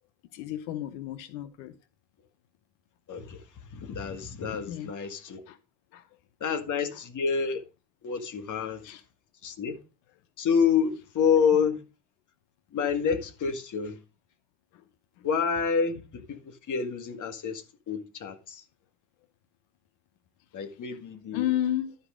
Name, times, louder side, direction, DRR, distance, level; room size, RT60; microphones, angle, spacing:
voice 1, 0.3-1.7 4.7-4.9 5.5-5.6 5.9-6.1 8.8-9.0 21.3-21.9, left 12 dB, 80° left, 1.0 m, -31 dB
voice 2, 3.1-5.4 6.4-7.6 8.0-9.0 9.4-9.8 10.4-11.8 12.7-14.0 15.2-18.6 20.5-21.5, left 6 dB, 40° left, 1.8 m, -28 dB
13.0 x 4.9 x 5.0 m
supercardioid pair, 115°, 48 cm